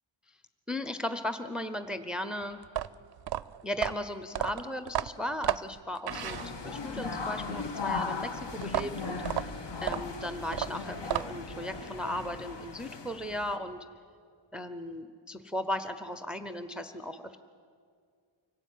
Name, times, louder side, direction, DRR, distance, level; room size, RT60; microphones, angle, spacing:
voice 1, 0.7-2.6 3.6-6.4 6.6-9.2 9.8-13.8 14.5-17.4, left 1 dB, ahead, 8 dB, 0.7 m, -36 dB
sound 1, 2.6-6.9 8.6-11.6, right 11 dB, 55° right, 0.5 m, -33 dB
sound 2, 6.1-13.6, left 4 dB, 60° left, 1.5 m, -37 dB
25.0 x 17.0 x 9.2 m, 2.2 s
wide cardioid pair, 175°, 49 cm